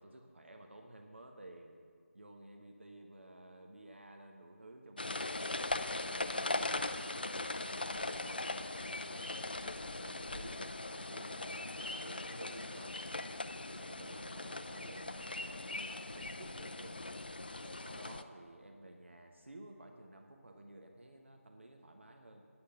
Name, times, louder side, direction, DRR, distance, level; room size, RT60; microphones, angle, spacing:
voice 1, 0.0-1.8 2.1-5.8 6.2-13.4 13.7-17.0 17.6-22.4, right 1 dB, 55° right, 3 dB, 1.0 m, -54 dB
sound 1, 5.0-18.2, left 2 dB, 40° left, 0.4 m, -40 dB
9.7 x 8.7 x 6.8 m, 2.1 s
figure-of-eight pair, 170°, 8 cm